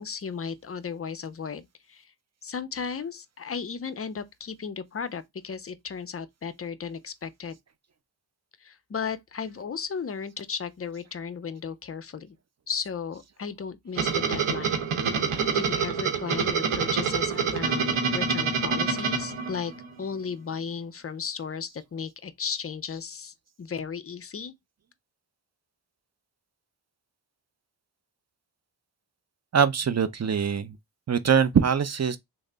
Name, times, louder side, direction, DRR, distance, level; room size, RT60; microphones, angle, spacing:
voice 1, 0.0-2.1 2.4-7.6 8.6-12.4 12.7-14.8 15.1-19.7 20.0-24.5, left 6 dB, 30° left, 0.5 m, -35 dB
sound 1, 13.9-20.0, right 6 dB, 90° right, 0.8 m, -27 dB
voice 2, 29.5-30.8 31.1-32.2, right 7 dB, 35° right, 0.5 m, -23 dB
3.2 x 2.0 x 3.7 m
cardioid pair, 45°, 48 cm